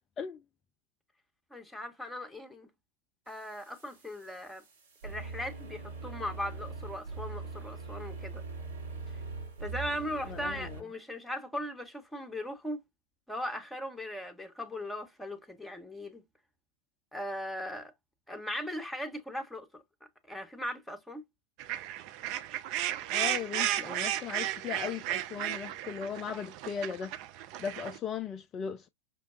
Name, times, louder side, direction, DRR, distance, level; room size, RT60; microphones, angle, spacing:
voice 1, 1.5-2.7 3.3-4.6 5.0-8.4 9.6-12.8 13.3-16.2 17.1-17.9 18.3-19.8 20.3-21.2, left 1 dB, 5° left, 0.9 m, -38 dB
sound 1, 3.3-10.8, right 4 dB, 60° right, 1.2 m, -42 dB
voice 2, 10.3-10.8 23.1-27.1 27.6-28.9, left 7 dB, 25° left, 0.3 m, -37 dB
sound 2, 21.6-28.0, right 12 dB, 40° right, 0.4 m, -34 dB
5.8 x 2.2 x 2.4 m
figure-of-eight pair, 90°, 0 cm